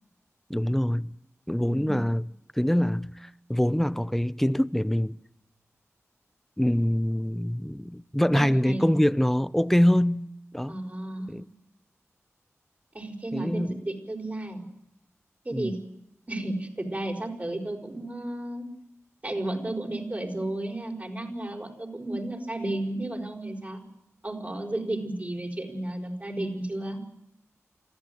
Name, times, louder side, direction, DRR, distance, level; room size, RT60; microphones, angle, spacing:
voice 1, 0.5-1.1 1.5-2.3 2.6-5.2 6.6-10.3 10.5-10.7 11.3-11.4 13.3-13.8 15.5-15.7, equal, 5° left, 0.8 m, -24 dB
voice 2, 1.6-2.0 8.3-8.9 10.7-11.3 12.9-14.6 15.4-15.8 16.3-18.6 19.2-23.8 24.2-27.0, right 1 dB, 30° right, 5.5 m, -33 dB
25.5 x 15.0 x 9.5 m
wide cardioid pair, 75°, 5 cm